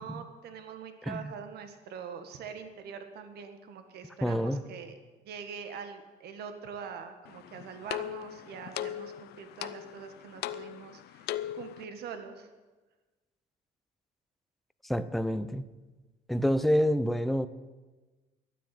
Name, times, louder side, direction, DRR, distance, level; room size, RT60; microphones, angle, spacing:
voice 1, 0.0-5.0 5.3-12.5, right 6 dB, 70° right, 8 dB, 1.7 m, -43 dB
voice 2, 1.0-1.3 4.2-4.6 14.8-15.6 16.3-17.5, equal, ahead, 12 dB, 0.7 m, -28 dB
sound 1, 7.3-11.8, left 12 dB, 75° left, 0.6 m, -39 dB
13.0 x 9.7 x 9.2 m, 1.2 s
cardioid pair, 110°, 17 cm